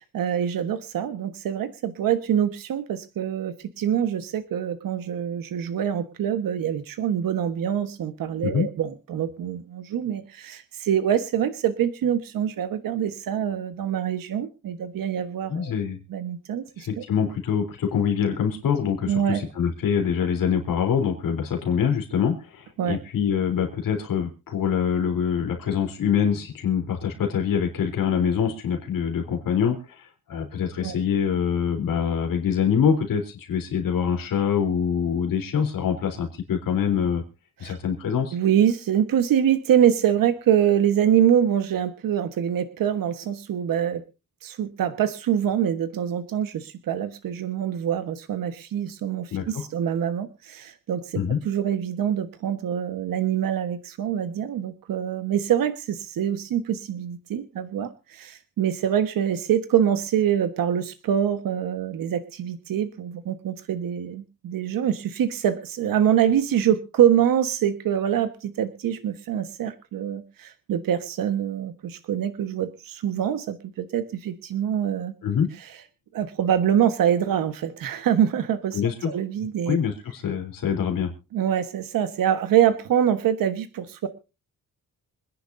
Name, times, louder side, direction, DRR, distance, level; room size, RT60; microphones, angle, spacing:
voice 1, 0.0-15.7 16.1-17.0 19.1-19.4 22.8-23.0 30.8-31.0 37.6-37.8 38.3-44.0 44.4-75.1 76.1-78.8 79.0-79.8 81.3-84.1, right 9 dB, 90° right, 10 dB, 1.4 m, -25 dB
voice 2, 15.5-16.0 16.8-37.2 37.6-38.4 49.3-49.7 51.2-51.4 75.2-75.5 78.7-79.1 79.7-81.1, left 7 dB, 80° left, 3 dB, 3.7 m, -25 dB
27.0 x 10.5 x 2.7 m, 0.30 s
wide cardioid pair, 130°, 33 cm